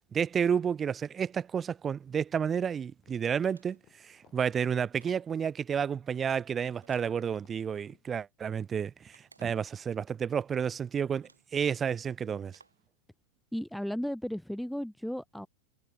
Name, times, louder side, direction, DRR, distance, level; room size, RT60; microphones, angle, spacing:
voice 1, 0.1-3.8 4.0-12.6, right 7 dB, 20° right, 0.8 m, -31 dB
sound 1, 2.6-8.1, left 16 dB, 35° left, 7.2 m, -64 dB
sound 2, 3.4-4.0 5.0-5.4 6.8-7.8 9.1-9.8 10.6-10.7 11.2-11.6 12.5-12.9, right 3 dB, 80° right, 3.6 m, -62 dB
voice 2, 13.5-15.5, equal, ahead, 0.4 m, -35 dB
figure-of-eight pair, 90°, 0 cm